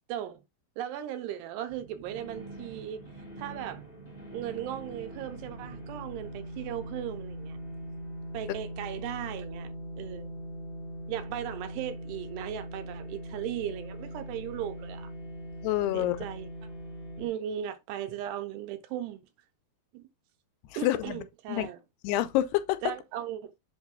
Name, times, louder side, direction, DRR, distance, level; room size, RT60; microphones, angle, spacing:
voice 1, 0.1-0.4 0.8-3.0 3.4-3.9 4.3-7.6 8.3-10.3 11.1-15.1 15.9-16.5 17.2-19.2 19.9-20.0 20.8-21.8 22.8-23.5, right 11 dB, 85° right, 2.9 m, -37 dB
sound 1, 1.7-17.3, equal, 30° left, 1.1 m, -41 dB
voice 2, 15.6-16.2 20.7-21.7 22.0-22.8, left 14 dB, 85° left, 2.5 m, -28 dB
7.9 x 2.8 x 5.3 m
omnidirectional pair, 4.8 m